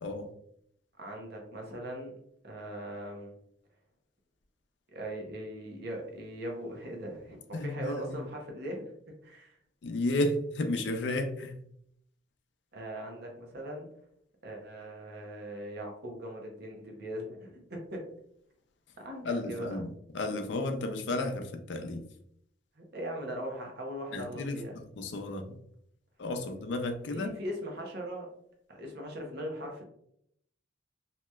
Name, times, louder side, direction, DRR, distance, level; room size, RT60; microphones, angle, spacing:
voice 1, 1.0-2.2 2.4-3.3 4.9-8.9 9.2-9.6 12.7-13.9 14.4-18.1 19.0-19.8 22.8-24.8 27.1-28.3 28.7-29.8, equal, 60° right, 1 dB, 0.8 m, -40 dB
voice 2, 7.5-8.2 9.8-11.6 19.2-19.9 20.1-22.0 24.1-25.5 26.2-27.4, left 2 dB, 70° left, 5 dB, 0.5 m, -33 dB
3.1 x 2.8 x 2.2 m, 0.72 s
head